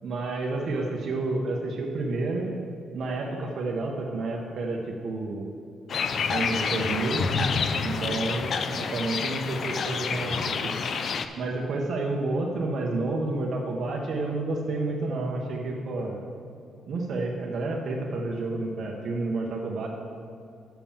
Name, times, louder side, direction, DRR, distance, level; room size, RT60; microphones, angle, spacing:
voice 1, 0.0-2.5 2.9-5.5 6.3-7.5 7.8-10.7 11.4-16.2 16.9-19.9, right 2 dB, 60° right, -1 dB, 0.9 m, -30 dB
sound 1, 5.9-11.3, left 5 dB, 55° left, 0.5 m, -28 dB
7.4 x 5.8 x 7.2 m, 2.5 s
cardioid pair, 90°, 0 cm